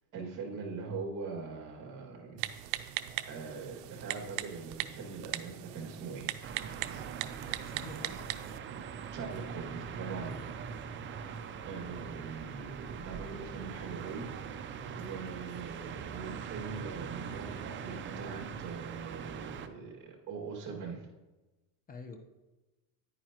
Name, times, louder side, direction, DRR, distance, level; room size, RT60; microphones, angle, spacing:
voice 1, 0.1-2.5 2.8-2.9 3.3-6.3 9.1-10.5 10.9-21.1, right 4 dB, 40° right, -1 dB, 2.3 m, -42 dB
Typing, 2.4-8.6, right 15 dB, 70° right, 0.7 m, -39 dB
sound 1, 6.4-19.7, right 7 dB, 25° right, 0.5 m, -42 dB
voice 2, 7.4-8.4 10.2-10.5 21.9-22.2, left 4 dB, 20° left, 4 dB, 1.1 m, -48 dB
10.0 x 9.6 x 3.0 m, 1.1 s
cardioid pair, 140°, 45 cm